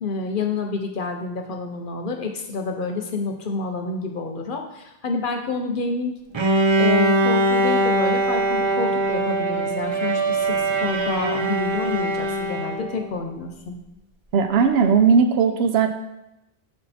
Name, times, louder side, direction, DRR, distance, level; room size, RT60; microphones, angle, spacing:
voice 1, 0.0-6.1 6.8-13.8, left 4 dB, 60° left, 4 dB, 0.9 m, -28 dB
Bowed string instrument, 6.3-13.1, right 2 dB, 40° right, 0.4 m, -22 dB
voice 2, 14.3-15.9, right 6 dB, 85° right, 6 dB, 0.8 m, -17 dB
6.0 x 4.5 x 4.2 m, 0.90 s
omnidirectional pair, 1.0 m